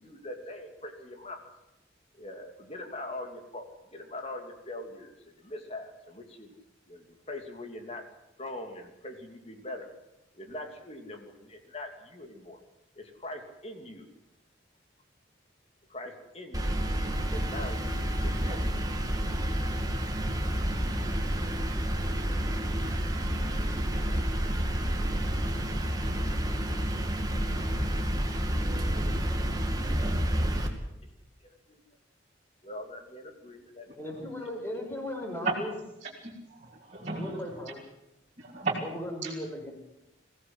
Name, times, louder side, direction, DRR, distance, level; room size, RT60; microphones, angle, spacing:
voice 1, 0.0-1.5 2.1-6.5 6.9-8.1 8.4-9.9 10.3-12.6 13.0-14.1 15.9-16.8 17.3-18.7 31.7-31.8 32.6-33.9 37.0-37.1, left 1 dB, 30° left, 5 dB, 3.0 m, -42 dB
sound 1, 16.5-30.7, equal, 20° right, 2.3 m, -29 dB
voice 2, 34.0-35.7 37.1-37.8 38.8-39.7, left 1 dB, 10° left, 1 dB, 5.9 m, -37 dB
voice 3, 36.2-37.4 38.4-38.9 39.2-39.3, right 3 dB, 35° right, -5 dB, 3.3 m, -33 dB
23.0 x 16.5 x 8.0 m, 0.88 s
head